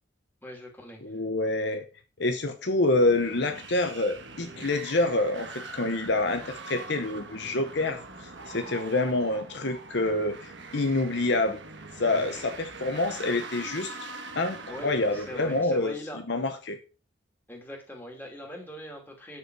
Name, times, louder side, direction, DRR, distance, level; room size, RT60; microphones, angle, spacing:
voice 1, 0.4-1.0 12.1-12.4 14.7-16.2 17.5-19.4, equal, 10° left, 0 dB, 2.6 m, -41 dB
voice 2, 1.0-1.8 2.2-11.6 12.0-13.9 14.4-16.0 16.3-16.8, left 2 dB, 60° left, 6 dB, 0.9 m, -27 dB
sound 1, 2.7-15.6, right 3 dB, 65° right, 1.4 m, -43 dB
9.6 x 7.2 x 4.7 m, 0.36 s
head